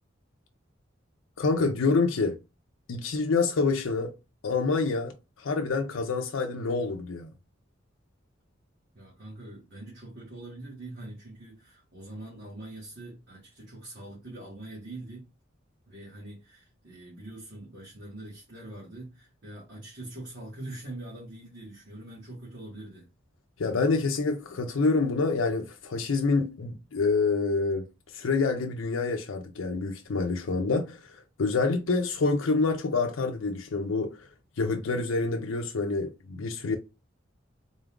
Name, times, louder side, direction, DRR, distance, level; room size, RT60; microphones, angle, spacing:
voice 1, 1.4-2.4 2.9-4.2 4.4-7.3 23.6-34.3 34.6-36.8, left 4 dB, 85° left, 0.6 m, -27 dB
voice 2, 8.9-15.3 15.9-23.1, right 2 dB, 60° right, 1.6 m, -43 dB
3.9 x 2.4 x 3.6 m
head